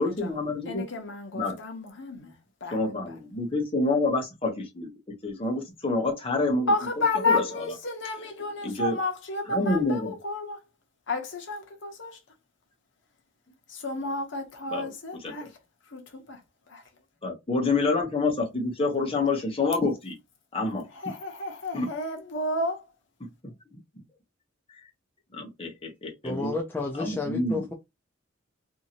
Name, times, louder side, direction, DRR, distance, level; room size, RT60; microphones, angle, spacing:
voice 1, 0.0-0.8 1.3-1.6 2.7-4.9 5.2-7.7 8.6-9.0 9.5-10.1 14.7-15.5 17.2-20.2 20.5-21.1 21.7-21.9 23.2-24.0 24.7-24.9 25.3-26.6 26.9-27.6, left 3 dB, 30° left, 0.9 m, -28 dB
voice 2, 0.7-2.3 2.6-2.8 6.7-10.6 11.1-12.2 13.7-15.5 15.9-16.4 16.7-16.8 21.0-22.8, left 2 dB, 65° left, 0.9 m, -31 dB
voice 3, 26.2-27.7, left 3 dB, 10° left, 0.4 m, -31 dB
2.7 x 2.6 x 2.8 m
head